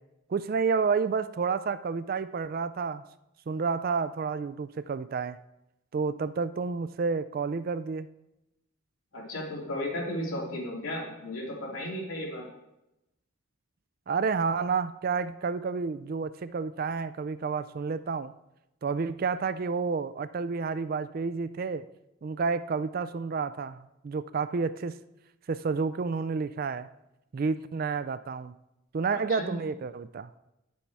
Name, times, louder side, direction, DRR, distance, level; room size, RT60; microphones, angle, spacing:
voice 1, 0.3-3.0 3.5-5.4 5.9-8.1 14.1-18.3 18.8-21.9 22.2-24.9 25.5-26.9 27.3-28.5 28.9-30.3, right 5 dB, 40° right, 14 dB, 0.3 m, -30 dB
voice 2, 9.1-12.5 29.1-29.5, left 1 dB, 70° left, -3 dB, 3.0 m, -34 dB
10.0 x 7.0 x 4.7 m, 0.90 s
head